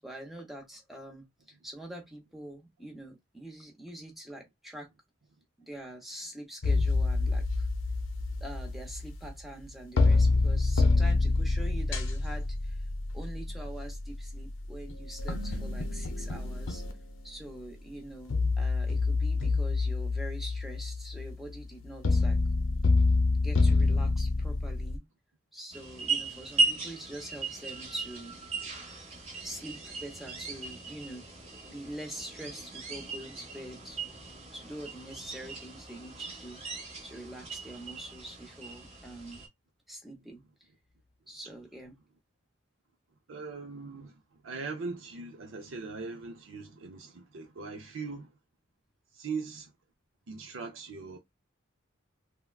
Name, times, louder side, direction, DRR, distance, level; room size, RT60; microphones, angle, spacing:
voice 1, 0.0-4.9 5.7-7.7 8.4-12.8 13.1-16.8 17.2-22.4 23.4-25.0 25.5-28.4 29.0-29.1 29.4-31.2 31.7-34.0 34.5-36.6 37.0-39.4 39.9-40.4 41.3-41.9, right 1 dB, ahead, 0.8 m, -44 dB
sound 1, 6.6-9.7 10.0-17.5 18.3-25.0, left 3 dB, 75° left, 0.6 m, -27 dB
sound 2, 25.7-39.5, right 3 dB, 30° right, 0.9 m, -37 dB
voice 2, 43.3-48.3 49.1-49.7 50.3-51.2, right 4 dB, 70° right, 0.5 m, -40 dB
3.5 x 2.1 x 2.3 m
head